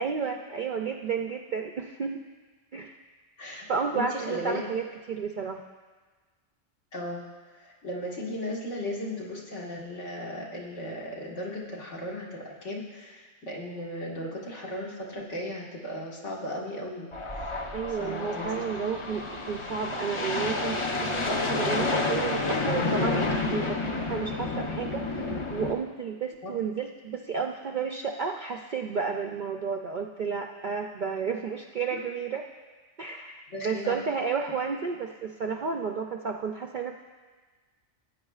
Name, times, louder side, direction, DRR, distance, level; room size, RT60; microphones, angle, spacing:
voice 1, 0.0-2.2 2.7-3.0 3.7-5.6 17.7-20.8 21.1-23.2 23.5-32.4 33.0-37.0, right 6 dB, 60° right, 3 dB, 0.5 m, -32 dB
voice 2, 3.9-4.6 6.9-7.2 7.6-17.6 17.9-18.6 26.4-26.5 31.9-32.0 33.5-33.9, left 1 dB, 70° left, -3 dB, 2.0 m, -36 dB
sound 1, 17.1-25.7, left 3 dB, 30° left, 0.6 m, -30 dB
18.0 x 8.8 x 2.4 m, 1.4 s
omnidirectional pair, 1.3 m